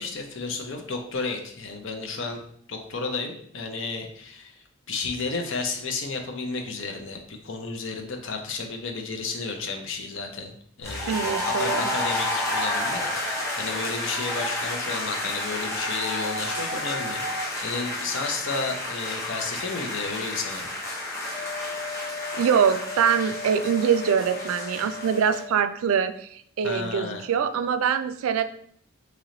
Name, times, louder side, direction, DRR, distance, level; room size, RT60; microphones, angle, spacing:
voice 1, 0.0-2.4 2.7-10.5 10.8-20.7 26.6-27.2, left 4 dB, 60° left, 3 dB, 0.6 m, -32 dB
sound 1, 10.8-25.4, left 1 dB, 10° left, 0.7 m, -31 dB
voice 2, 11.1-11.8 22.3-28.4, right 7 dB, 75° right, 10 dB, 0.3 m, -24 dB
Wind instrument woodwind instrument, 21.3-25.5, left 4 dB, 30° left, 1.3 m, -37 dB
3.1 x 3.0 x 3.8 m, 0.65 s
head